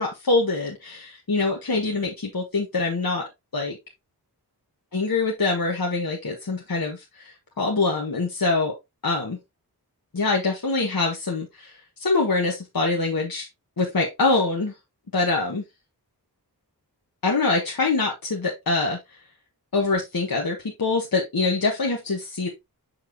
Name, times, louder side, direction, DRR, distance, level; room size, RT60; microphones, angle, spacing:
voice 1, 0.0-3.8 4.9-8.7 9.0-9.4 10.1-11.7 12.0-13.5 13.8-14.7 15.1-15.6 17.2-19.0 19.7-22.5, left 3 dB, 60° left, 0 dB, 1.4 m, -24 dB
6.8 x 5.8 x 2.7 m, 0.21 s
wide cardioid pair, 55°, 40 cm